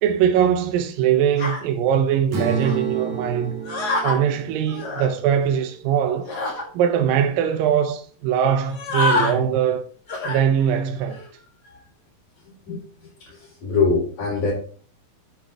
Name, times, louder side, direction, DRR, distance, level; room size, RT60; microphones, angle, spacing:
voice 1, 0.0-3.6 4.0-6.3 6.7-9.8 10.3-11.2, right 8 dB, 80° right, 2.4 m, -21 dB
sound 1, 1.4-1.6 2.6-2.8 3.6-4.2 4.7-5.1 6.2-6.6 7.2-7.3 7.5-7.8 8.6-9.4 10.1-10.4 11.0-11.3, left 2 dB, 35° left, 1.9 m, -26 dB
Strum, 2.3-6.5, right 6 dB, 55° right, 3.1 m, -32 dB
voice 2, 13.2-14.5, left 4 dB, 60° left, 5.4 m, -23 dB
8.5 x 8.4 x 3.4 m
omnidirectional pair, 4.1 m